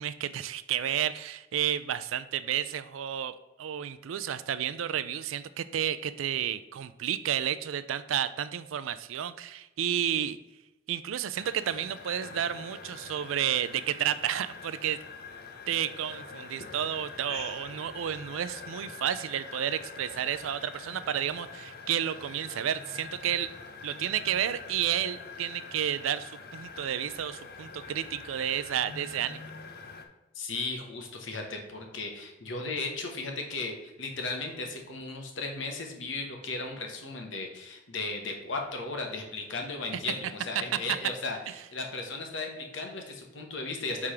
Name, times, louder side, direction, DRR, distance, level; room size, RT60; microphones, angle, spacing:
voice 1, 0.0-10.4 10.9-15.0 15.7-23.5 23.8-29.5 40.7-40.8, right 10 dB, 85° right, 14 dB, 0.4 m, -31 dB
sound 1, 11.3-30.1, left 4 dB, 50° left, 0.6 m, -45 dB
voice 2, 30.3-41.4 41.7-44.1, left 3 dB, 70° left, 2 dB, 1.1 m, -36 dB
4.9 x 3.6 x 5.7 m, 1.0 s
head